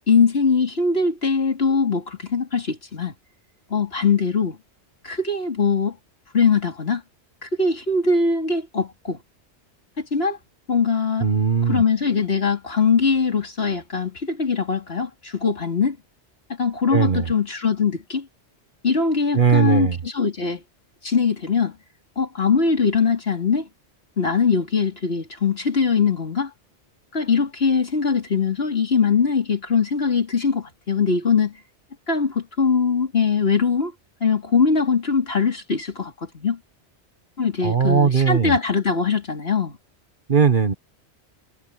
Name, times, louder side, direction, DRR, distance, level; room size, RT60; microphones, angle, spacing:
voice 1, 0.1-3.1 3.7-4.6 5.0-6.0 6.3-7.0 7.4-9.2 10.0-10.4 10.7-11.3 11.7-16.0 16.6-18.3 18.8-20.6 21.0-21.7 22.2-23.7 24.2-26.5 27.1-31.5 32.1-33.9 34.2-36.6 37.4-39.8, left 5 dB, 60° left, 3.2 m, -21 dB
voice 2, 11.2-11.8 16.9-17.3 19.3-20.0 37.6-38.6 40.3-40.7, right 6 dB, 50° right, 1.4 m, -19 dB
omnidirectional pair, 1.2 m